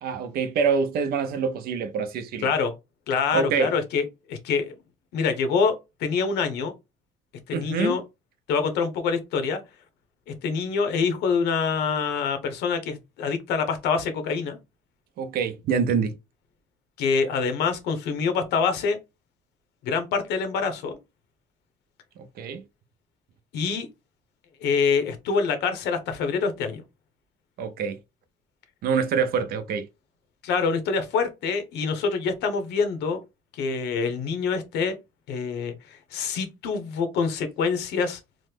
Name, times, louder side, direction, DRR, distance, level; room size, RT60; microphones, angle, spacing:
voice 1, 0.0-2.5 3.3-3.7 7.5-8.0 15.2-16.1 22.4-22.6 27.6-28.0 28.8-29.9, right 6 dB, 65° right, 0.6 m, -25 dB
voice 2, 2.4-2.7 3.1-4.7 5.1-5.7 6.0-6.7 7.5-8.0 8.5-9.6 10.4-14.6 17.0-19.0 19.8-21.0 23.5-23.9 24.6-26.8 30.4-33.2 33.5-35.0 35.3-38.2, left 5 dB, 85° left, 0.8 m, -25 dB
3.1 x 2.0 x 3.3 m
cardioid pair, 110°, 17 cm